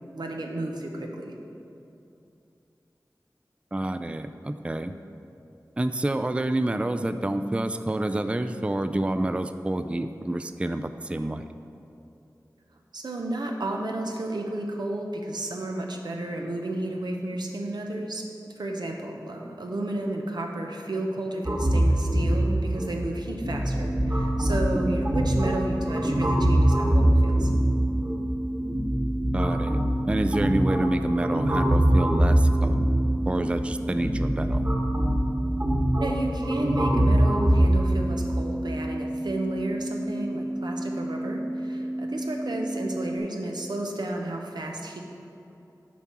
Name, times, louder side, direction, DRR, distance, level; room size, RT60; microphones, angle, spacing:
voice 1, 0.1-1.3 12.9-18.2 18.6-27.5 36.0-45.0, right 1 dB, 85° right, 2 dB, 0.8 m, -32 dB
voice 2, 3.7-5.0 5.8-11.5 24.7-25.0 29.3-32.8 33.2-34.7, right 1 dB, 15° right, 9 dB, 0.3 m, -28 dB
sound 1, 21.5-37.7, right 1 dB, 35° right, 1.5 m, -24 dB
sound 2, 23.7-43.2, right 1 dB, 25° left, 1.1 m, -32 dB
7.1 x 4.7 x 5.8 m, 2.7 s
wide cardioid pair, 40°, 7 cm